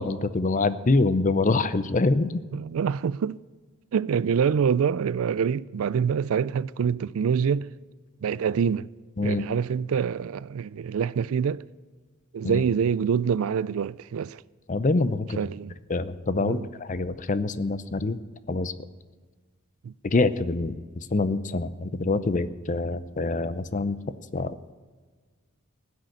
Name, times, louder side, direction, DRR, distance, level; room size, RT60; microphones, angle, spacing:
voice 1, 0.0-2.3 9.2-9.4 12.4-12.7 14.7-15.4 15.9-18.2 18.5-18.7 20.0-24.0 24.3-24.5, left 3 dB, 35° left, 0.6 m, -25 dB
voice 2, 2.5-3.4 3.9-7.7 8.2-8.9 9.2-11.6 12.3-14.4 15.4-15.7 16.4-16.7 19.8-19.9, right 7 dB, 70° right, 0.3 m, -26 dB
16.0 x 6.6 x 9.9 m
head